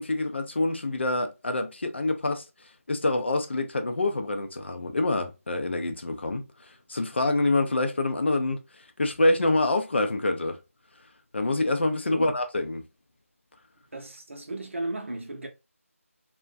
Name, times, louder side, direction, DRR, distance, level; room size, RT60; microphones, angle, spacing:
voice 1, 0.0-2.4 2.9-6.4 6.9-8.6 9.0-10.6 11.3-12.8, left 2 dB, 50° left, 0.4 m, -26 dB
voice 2, 13.9-15.5, right 2 dB, 55° right, 0.7 m, -35 dB
2.4 x 2.1 x 2.5 m
figure-of-eight pair, 170°, 8 cm